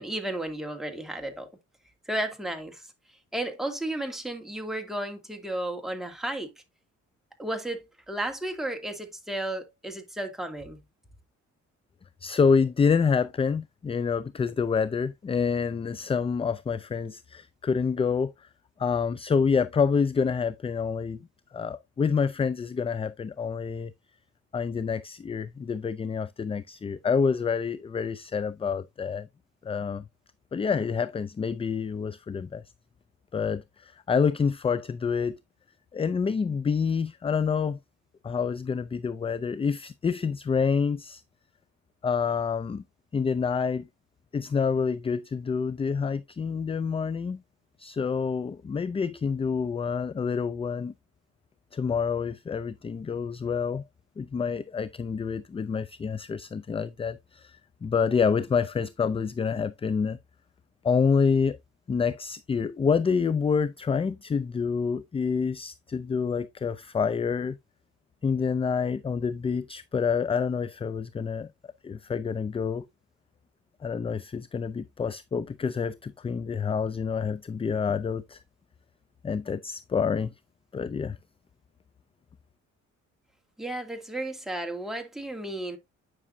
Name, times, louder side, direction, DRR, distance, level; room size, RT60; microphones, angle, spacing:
voice 1, 0.0-1.5 2.1-2.8 3.3-6.5 7.4-10.8 83.6-85.8, right 1 dB, ahead, 2.3 m, -33 dB
voice 2, 12.2-18.5 18.8-23.9 24.5-29.3 29.6-30.0 30.5-32.6 33.3-35.4 35.9-37.8 38.2-41.2 42.0-42.8 43.1-43.9 44.3-47.4 47.8-50.9 51.7-53.8 54.2-60.2 60.8-61.6 61.9-67.6 68.2-71.5 71.8-72.9 73.8-78.4 79.2-80.3 80.7-81.2, left 5 dB, 20° left, 0.3 m, -27 dB
9.6 x 6.0 x 2.6 m
cardioid pair, 90°, 30 cm